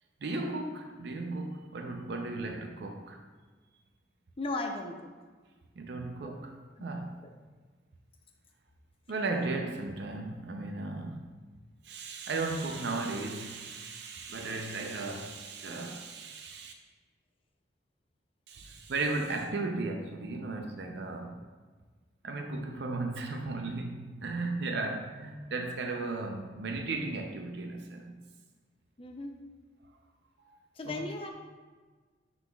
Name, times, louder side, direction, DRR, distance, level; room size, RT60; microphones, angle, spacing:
voice 1, 0.2-3.2 5.8-6.5 6.8-7.2 9.1-11.3 11.8-16.7 18.5-21.4 22.2-28.1 30.4-30.6 30.8-31.0, right 3 dB, 65° right, 3 dB, 0.5 m, -35 dB
voice 2, 4.4-5.1 6.2-6.3 6.8-6.9 7.2-7.3 29.0-29.3 30.8-31.3, left 2 dB, 30° left, 4 dB, 0.5 m, -36 dB
11.0 x 3.9 x 2.3 m, 1.4 s
head